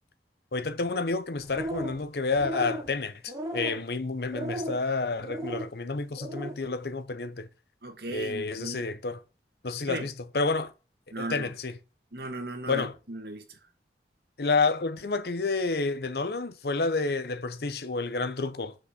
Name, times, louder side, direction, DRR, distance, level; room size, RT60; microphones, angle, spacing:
voice 1, 0.5-7.5 8.1-9.2 9.6-10.7 11.2-11.8 12.7-12.9 14.4-18.7, left 3 dB, 65° left, 0.8 m, -29 dB
sound 1, 1.4-2.0 2.3-2.9 3.3-3.8 4.3-4.8 5.2-5.7 6.1-6.5, right 1 dB, 20° right, 2.1 m, -35 dB
voice 2, 7.8-8.8 9.9-10.1 11.1-11.5 12.1-13.6, right 2 dB, 60° right, 1.6 m, -37 dB
5.8 x 5.4 x 6.6 m
head